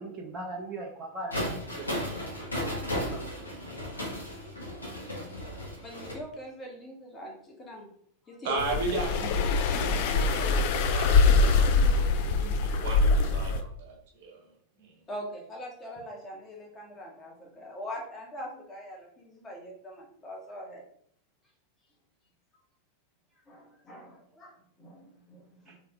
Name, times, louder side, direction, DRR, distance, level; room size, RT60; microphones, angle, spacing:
voice 1, 0.0-1.9 2.8-3.2, right 2 dB, 20° right, -3 dB, 0.7 m, -39 dB
sound 1, 1.3-6.1, left 1 dB, 80° left, 1.0 m, -35 dB
voice 2, 5.8-7.9 8.2-8.6 15.1-20.8 23.5-25.8, left 1 dB, 20° left, -1 dB, 1.2 m, -42 dB
voice 3, 8.4-14.4 14.8-14.9, right 3 dB, 50° right, 0 dB, 1.3 m, -36 dB
sound 2, 8.6-13.6, left 4 dB, 50° left, 0.4 m, -23 dB
3.4 x 3.0 x 3.5 m, 0.65 s
figure-of-eight pair, 90°, 0 cm